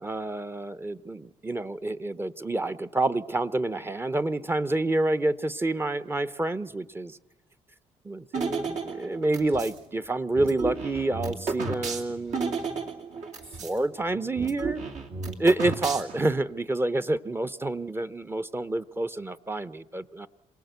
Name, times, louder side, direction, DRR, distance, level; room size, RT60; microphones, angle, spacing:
voice 1, 0.0-7.2 8.0-12.8 13.6-14.8 15.4-20.3, right 2 dB, 20° right, 14 dB, 0.7 m, -28 dB
sound 1, 8.3-9.8 10.4-13.8 14.0-14.1 14.4-16.3, right 4 dB, 70° right, 2.6 m, -32 dB
27.0 x 17.5 x 8.1 m, 1.0 s
cardioid pair, 80°, 13 cm